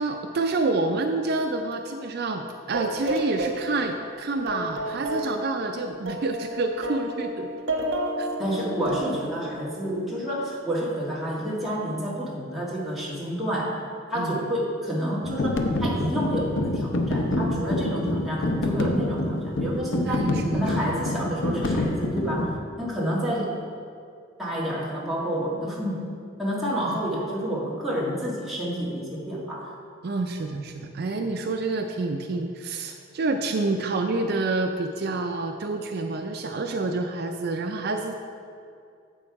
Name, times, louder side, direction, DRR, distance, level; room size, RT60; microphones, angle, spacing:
voice 1, 0.0-7.5 8.2-8.3 14.1-14.4 20.1-20.9 26.8-27.0 30.0-38.1, right 3 dB, 55° right, 4 dB, 0.4 m, -28 dB
sound 1, 2.7-4.1 4.5-10.4, right 1 dB, 90° right, 1.1 m, -32 dB
voice 2, 8.4-13.8 14.1-23.5 24.4-26.1 26.4-29.7, equal, ahead, -7 dB, 1.6 m, -29 dB
sound 2, 15.2-22.6, left 1 dB, 65° left, 0.7 m, -27 dB
7.7 x 6.4 x 4.8 m, 2.4 s
head